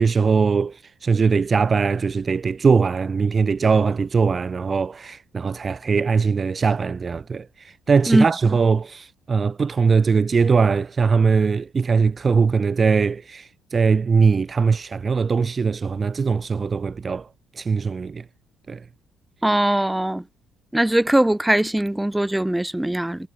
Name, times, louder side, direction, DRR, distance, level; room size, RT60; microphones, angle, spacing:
voice 1, 0.0-17.3 17.6-18.2 18.7-18.8, right 5 dB, 30° right, 4.2 m, -21 dB
voice 2, 19.4-20.2 20.7-23.2, right 1 dB, 5° right, 6.6 m, -20 dB
cardioid pair, 130°, 0 cm